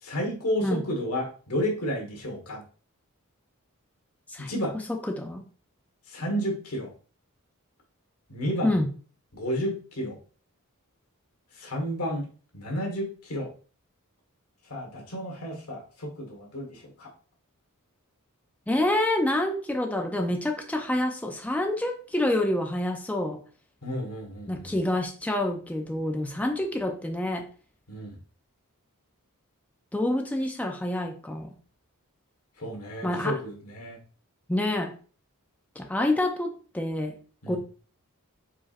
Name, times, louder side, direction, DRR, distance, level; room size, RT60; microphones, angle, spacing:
voice 1, 0.0-2.6 4.4-4.8 6.1-6.9 8.3-8.7 9.3-10.2 11.5-12.3 12.5-13.5 14.7-17.1 23.8-24.7 27.9-28.2 32.6-34.0 37.4-37.6, equal, 85° left, 1 dB, 1.6 m, -31 dB
voice 2, 4.3-5.4 8.6-8.9 18.7-23.4 24.5-27.5 29.9-31.5 33.0-33.4 34.5-34.9 35.8-37.2 37.5-37.6, left 1 dB, 5° left, 3 dB, 0.4 m, -27 dB
4.8 x 4.3 x 2.5 m, 0.40 s
head